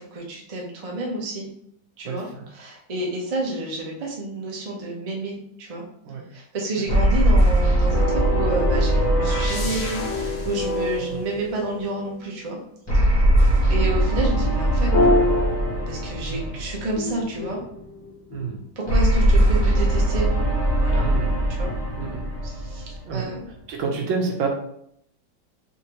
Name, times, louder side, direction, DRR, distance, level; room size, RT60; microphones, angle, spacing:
voice 1, 0.0-1.5 2.0-2.2 2.5-5.8 6.3-12.6 12.9-13.3 13.7-15.2 15.9-17.6 18.8-20.3 20.8-21.1 21.5-21.7 22.4-23.4, right 2 dB, 40° right, -2 dB, 0.5 m, -30 dB
voice 2, 2.0-2.4 6.0-6.2 6.8-6.9 11.0-11.2 13.2-13.5 16.3-16.5 18.3-18.6 21.0-21.3 22.0-22.3 23.0-23.3 23.7-24.5, right 5 dB, 80° right, 1 dB, 1.6 m, -29 dB
sound 1, 6.9-11.4 12.9-17.2 18.9-23.4, right 1 dB, 15° left, 1.2 m, -21 dB
sound 2, 7.9-12.1 14.9-16.4 17.0-18.7, left 1 dB, 55° left, 0.8 m, -27 dB
4.3 x 3.5 x 2.9 m, 0.71 s
omnidirectional pair, 2.1 m